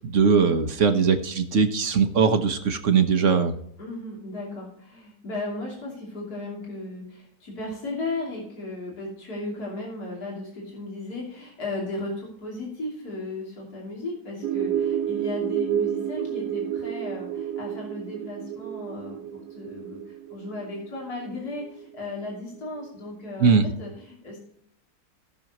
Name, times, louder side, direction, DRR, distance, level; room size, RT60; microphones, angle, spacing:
voice 1, 0.0-3.6 23.4-23.7, right 5 dB, 50° right, 7 dB, 1.2 m, -20 dB
voice 2, 3.8-24.4, left 2 dB, 65° left, -4 dB, 3.5 m, -35 dB
sound 1, 14.4-22.1, right 10 dB, 70° right, 1.0 m, -30 dB
18.0 x 6.4 x 3.0 m, 0.73 s
omnidirectional pair, 1.8 m